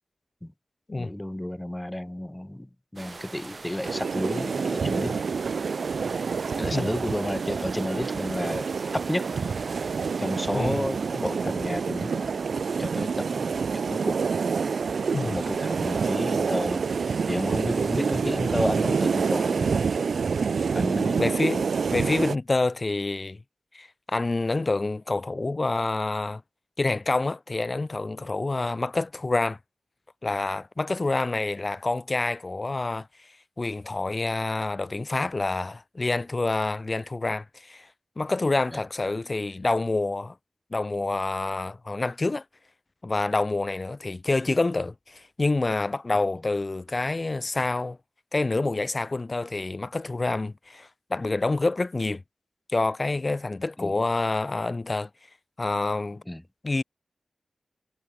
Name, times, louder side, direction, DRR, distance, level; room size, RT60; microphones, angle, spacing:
voice 1, 1.0-5.2 6.6-9.3 10.2-12.2 12.8-14.2 15.2-16.8 17.3-19.9 20.7-21.2 38.7-38.8 53.8-53.9 56.3-56.4, left 1 dB, 10° left, 1.4 m, -31 dB
sound 1, 3.0-18.2, right 3 dB, 50° right, 2.5 m, -45 dB
sound 2, 3.8-22.4, right 5 dB, 80° right, 0.4 m, -27 dB
voice 2, 21.2-21.6 21.9-23.4 23.7-26.4 26.8-29.6 30.2-37.9 38.2-40.3 40.7-42.4 43.0-48.0 48.3-52.2 52.7-55.1 55.6-56.2 56.6-56.8, left 2 dB, 40° left, 1.5 m, -27 dB
cardioid pair, 60°, 0 cm